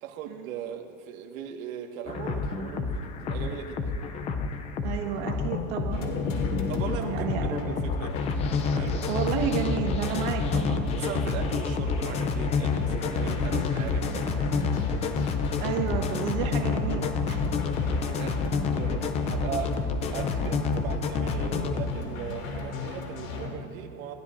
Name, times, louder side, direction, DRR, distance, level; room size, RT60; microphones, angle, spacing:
voice 1, 0.0-4.0 6.7-8.2 8.7-9.0 10.9-14.6 17.8-18.4 18.7-24.1, right 8 dB, 80° right, 3 dB, 1.6 m, -38 dB
sound 1, 2.1-21.9, left 4 dB, 15° left, 0.4 m, -29 dB
voice 2, 4.8-6.3 7.1-7.4 9.1-10.9 15.6-17.5, right 9 dB, 55° right, 2 dB, 1.5 m, -31 dB
sound 2, 5.9-23.5, left 3 dB, 80° left, 2.6 m, -37 dB
28.0 x 13.0 x 2.6 m, 2.1 s
supercardioid pair, 160°, 40 cm